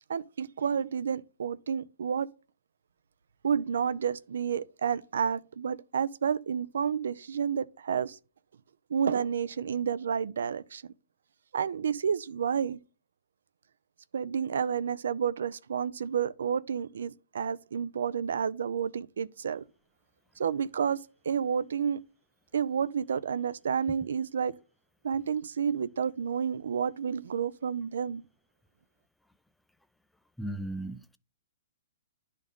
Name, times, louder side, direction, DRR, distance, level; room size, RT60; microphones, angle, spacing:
voice 1, 0.1-2.3 3.4-8.2 8.9-10.8 11.5-12.8 14.1-19.6 20.4-21.0 21.2-22.0 22.5-24.5 25.0-28.2, right 7 dB, 80° right, 0.4 m, -30 dB
voice 2, 30.4-31.2, right 1 dB, 5° left, 0.4 m, -36 dB
10.5 x 3.8 x 3.5 m
hypercardioid pair, 150°, 0 cm